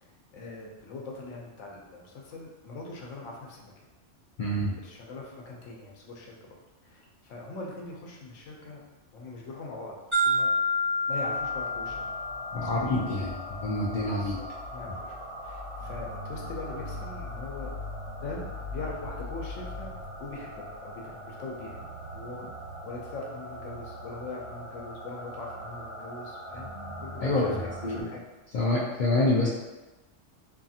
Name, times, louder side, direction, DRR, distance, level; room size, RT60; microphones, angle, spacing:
voice 1, 0.0-3.9 4.5-6.5 6.8-8.8 9.1-10.5 11.1-12.1 12.6-13.2 14.1-15.1 15.4-17.7 18.2-18.5 18.7-19.9 20.2-21.8 22.1-22.5 22.8-28.2, left 3 dB, 85° left, -1 dB, 0.9 m, -42 dB
voice 2, 4.4-4.7 12.5-14.4 27.2-27.6 27.8-28.1 28.5-29.5, left 2 dB, 65° left, -6 dB, 0.4 m, -27 dB
sound 1, 10.1-14.1, left 1 dB, 25° right, 1.1 m, -29 dB
sound 2, 11.1-28.0, left 1 dB, 65° right, 1.0 m, -40 dB
2.7 x 2.6 x 2.4 m, 1.1 s
omnidirectional pair, 1.3 m